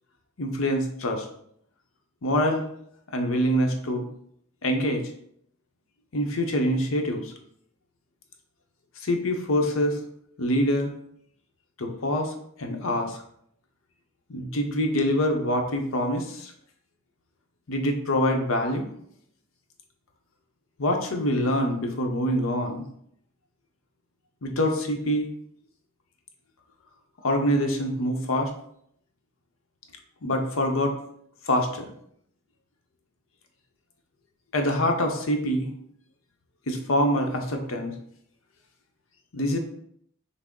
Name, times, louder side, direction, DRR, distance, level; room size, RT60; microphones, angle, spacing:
voice 1, 0.4-1.3 2.2-2.7 3.1-4.1 4.6-5.0 6.1-7.3 9.0-10.0 10.4-10.9 11.8-12.3 12.6-13.2 14.3-16.5 17.7-18.9 20.8-22.9 24.4-25.3 27.2-28.5 30.2-31.0 31.5-31.9 34.5-35.7 36.7-37.9 39.3-39.6, equal, 80° left, 3 dB, 0.8 m, -25 dB
5.9 x 2.0 x 3.7 m, 0.68 s
head